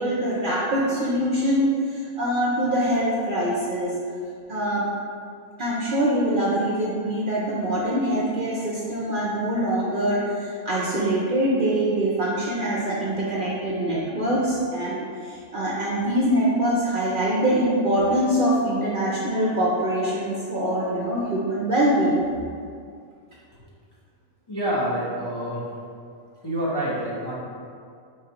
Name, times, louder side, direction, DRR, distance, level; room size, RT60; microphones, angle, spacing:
voice 1, 0.0-3.9 4.5-4.8 5.6-22.2, right 1 dB, 55° right, -6 dB, 0.6 m, -24 dB
voice 2, 24.5-25.7 26.4-27.3, right 1 dB, 25° left, -8 dB, 0.6 m, -27 dB
4.7 x 3.2 x 2.8 m, 2.3 s
omnidirectional pair, 1.3 m